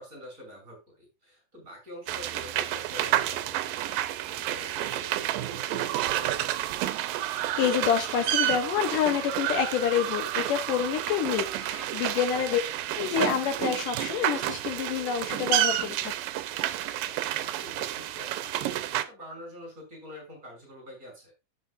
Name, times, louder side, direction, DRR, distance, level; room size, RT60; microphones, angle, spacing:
voice 1, 0.0-3.7 4.2-6.8 11.2-11.4 12.6-12.7 16.8-21.3, left 1 dB, 20° right, 0 dB, 6.2 m, -46 dB
sound 1, 2.1-19.0, right 13 dB, 80° right, 2.3 m, -30 dB
voice 2, 7.2-12.6 12.9-16.1, left 8 dB, 75° left, 6 dB, 2.3 m, -28 dB
15.0 x 6.6 x 2.6 m, 0.25 s
omnidirectional pair, 4.1 m